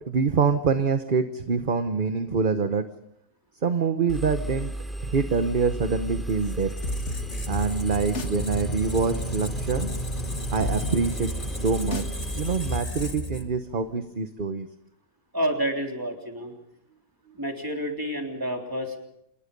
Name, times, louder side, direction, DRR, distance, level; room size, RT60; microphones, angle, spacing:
voice 1, 0.0-2.9 3.6-4.7 5.0-6.7 7.5-9.9 10.5-12.0 12.3-14.7, right 5 dB, 40° right, 9 dB, 1.1 m, -25 dB
Engine, 4.1-12.8, right 1 dB, ahead, 2.8 m, -35 dB
Squeak, 6.3-13.9, equal, 30° left, 1.9 m, -34 dB
sound 1, 6.8-14.2, left 2 dB, 60° left, 2.2 m, -38 dB
voice 2, 15.3-16.5 17.4-19.0, equal, 15° right, 2 dB, 3.6 m, -29 dB
27.5 x 20.5 x 5.3 m, 0.76 s
omnidirectional pair, 1.4 m